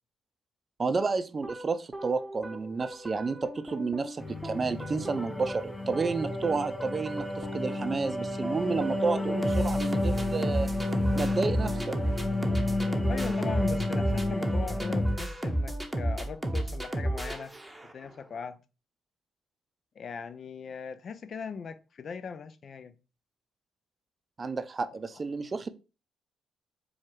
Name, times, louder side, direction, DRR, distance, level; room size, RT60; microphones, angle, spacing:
voice 1, 0.8-10.7 11.1-11.9 24.4-25.7, right 4 dB, 40° right, 0.5 m, -31 dB
sound 1, 1.4-18.1, right 1 dB, 10° right, 0.8 m, -33 dB
sound 2, 4.2-15.2, left 2 dB, 20° left, 0.8 m, -31 dB
voice 2, 13.1-17.5 17.8-18.6 20.0-22.9, left 6 dB, 55° left, 0.5 m, -39 dB
4.5 x 2.4 x 4.5 m
hypercardioid pair, 50°, 0 cm